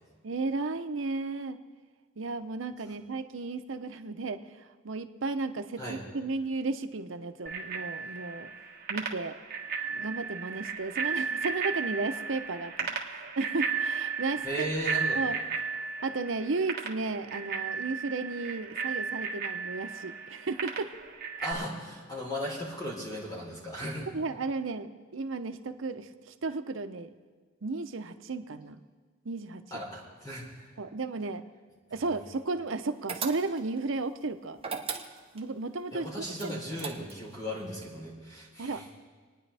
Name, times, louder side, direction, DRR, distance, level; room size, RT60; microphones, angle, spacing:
voice 1, 0.2-1.6 2.2-4.4 4.8-8.5 8.9-9.4 9.9-14.7 15.1-15.4 16.0-20.9 24.1-27.1 27.6-28.8 29.2-29.6 30.8-31.4 31.9-34.6 35.3-36.1 36.4-36.5 38.6-38.8, right 3 dB, 75° right, 9 dB, 0.7 m, -34 dB
Bicycle bell, 7.5-21.5, right 5 dB, 50° right, 1.4 m, -34 dB
voice 2, 14.4-15.2 21.4-24.1 29.7-30.7 35.9-38.8, equal, 20° left, -3 dB, 3.5 m, -36 dB
sound 1, 33.1-33.8 34.6-35.5 36.4-37.3, right 6 dB, 30° right, 1.0 m, -37 dB
29.0 x 9.8 x 3.4 m, 1.5 s
head